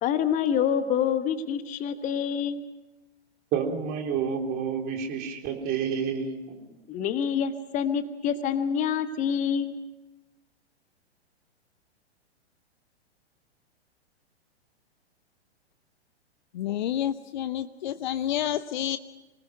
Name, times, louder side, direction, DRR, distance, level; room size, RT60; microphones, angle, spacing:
voice 1, 0.0-2.7 6.9-9.8, left 8 dB, 20° left, 11 dB, 1.2 m, -27 dB
voice 2, 3.5-6.6, right 7 dB, 25° right, 2 dB, 3.7 m, -29 dB
voice 3, 16.5-19.0, left 11 dB, 45° left, 12 dB, 0.7 m, -29 dB
25.5 x 19.5 x 6.6 m, 1.0 s
figure-of-eight pair, 110°, 33 cm